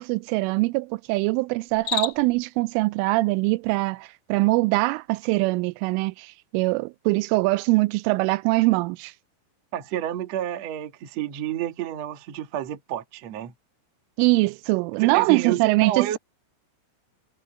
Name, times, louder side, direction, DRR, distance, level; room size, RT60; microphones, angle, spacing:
voice 1, 0.0-9.1 14.2-16.2, right 22 dB, 85° right, 3.0 m, -23 dB
Cricket, 1.7-2.4, left 9 dB, 35° left, 2.1 m, -30 dB
voice 2, 9.7-13.5 15.0-16.2, right 11 dB, 65° right, 1.6 m, -30 dB
omnidirectional pair, 5.7 m